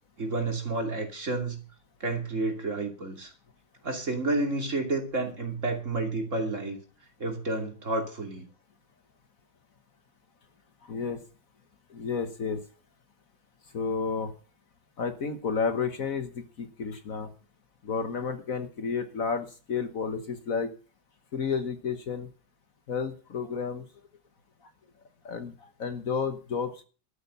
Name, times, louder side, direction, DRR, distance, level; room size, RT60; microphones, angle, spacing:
voice 1, 0.2-1.6 2.0-3.3 3.8-6.8 7.2-8.4, right 2 dB, 45° right, 3 dB, 3.1 m, -30 dB
voice 2, 10.8-11.2 11.9-12.6 13.7-14.3 15.0-17.3 17.8-20.7 21.3-22.3 22.9-23.9 25.2-26.8, left 5 dB, 55° left, 9 dB, 1.6 m, -31 dB
13.0 x 8.6 x 6.8 m, 0.37 s
omnidirectional pair, 1.8 m